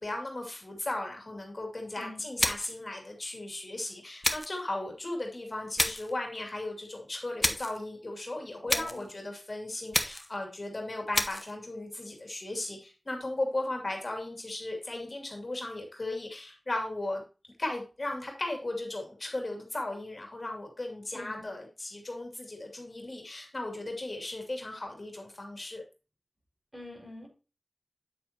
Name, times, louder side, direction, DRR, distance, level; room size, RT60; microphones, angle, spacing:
voice 1, 0.0-17.2 17.6-25.8, left 2 dB, 50° left, 2 dB, 2.6 m, -36 dB
sound 1, 2.4-2.8 4.2-4.6 5.8-6.1 7.4-7.8 8.7-9.1 9.9-10.4 11.1-11.5, left 1 dB, 20° left, 1.1 m, -30 dB
voice 2, 8.7-9.1 21.1-21.5 26.7-27.3, left 1 dB, 15° right, 0 dB, 4.9 m, -45 dB
8.9 x 7.7 x 2.9 m, 0.32 s
wide cardioid pair, 50°, 0 cm